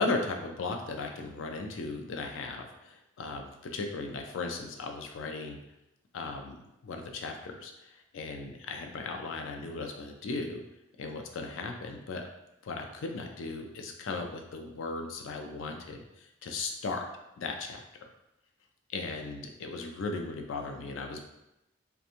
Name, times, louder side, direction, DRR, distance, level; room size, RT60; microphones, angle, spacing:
voice 1, 0.0-5.6 6.1-6.6 6.8-7.7 8.1-10.6 11.0-12.3 12.6-16.0 16.4-17.1 17.4-17.8 18.9-21.2, left 3 dB, 85° left, 4 dB, 0.4 m, -36 dB
2.5 x 2.2 x 2.8 m, 0.91 s
head